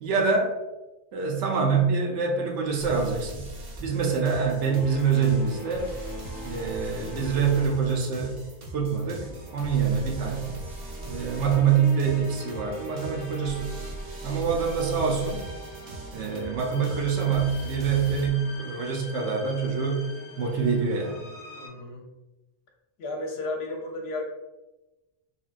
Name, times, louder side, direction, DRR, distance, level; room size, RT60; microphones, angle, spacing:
voice 1, 0.0-0.5 1.1-3.5 3.8-5.9 6.4-8.4 8.7-10.5 11.1-13.7 14.2-15.4 16.1-20.0 20.4-21.2, right 6 dB, 80° right, 2 dB, 0.9 m, -25 dB
sound 1, 2.8-18.3, right 1 dB, 50° right, 0.5 m, -40 dB
sound 2, 4.6-21.7, equal, 20° left, 0.7 m, -42 dB
voice 2, 21.5-22.1 23.0-24.3, left 2 dB, 65° left, 1 dB, 0.8 m, -34 dB
3.3 x 2.2 x 2.4 m, 1.1 s
omnidirectional pair, 1.2 m